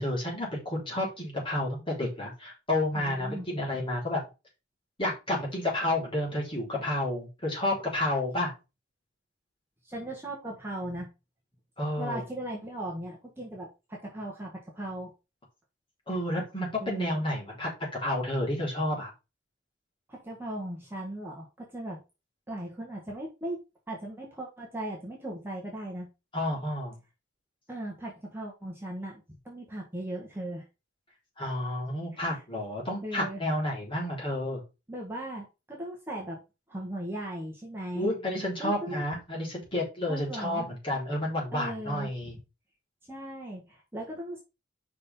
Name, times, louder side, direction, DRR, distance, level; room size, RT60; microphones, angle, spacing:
voice 1, 0.0-4.2 5.0-8.5 11.8-12.2 16.1-17.7 18.0-19.1 26.3-27.0 31.4-34.6 37.9-42.4, left 1 dB, 25° left, -3 dB, 3.7 m, -30 dB
voice 2, 2.9-3.5 9.8-11.1 12.0-15.1 16.8-17.2 20.1-22.0 22.5-23.6 23.9-26.1 27.7-30.7 32.1-32.4 33.0-33.4 34.9-36.4 36.7-38.1 38.6-39.0 40.1-40.7 41.5-42.1 43.1-44.4, right 1 dB, 10° right, -2 dB, 1.5 m, -38 dB
5.5 x 5.1 x 5.4 m, 0.28 s
head